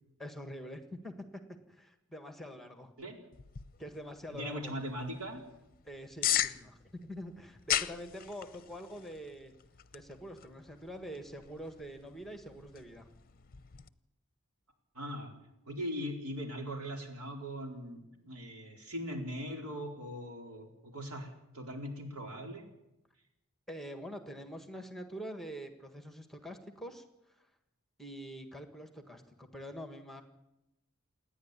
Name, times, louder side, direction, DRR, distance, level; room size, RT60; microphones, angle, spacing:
voice 1, 0.2-1.1 1.7-2.9 3.8-4.8 5.9-9.5 9.9-13.1 23.7-27.5 28.0-30.2, equal, ahead, 7 dB, 1.6 m, -45 dB
sound 1, 3.3-13.9, left 11 dB, 40° left, 0.7 m, -39 dB
voice 2, 4.3-5.4 14.9-15.3 15.7-22.6, equal, 80° right, 2 dB, 4.4 m, -40 dB
29.0 x 10.0 x 9.7 m, 0.90 s
head